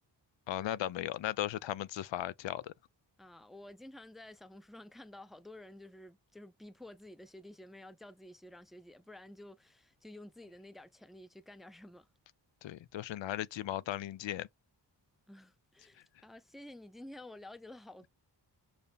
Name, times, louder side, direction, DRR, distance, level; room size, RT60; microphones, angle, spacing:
voice 1, 0.5-2.7 12.6-14.5, left 13 dB, 85° left, 0.6 m, -37 dB
voice 2, 3.2-12.1 15.3-18.1, left 1 dB, ahead, 0.4 m, -51 dB
6.7 x 4.3 x 3.4 m
wide cardioid pair, 170°, 43 cm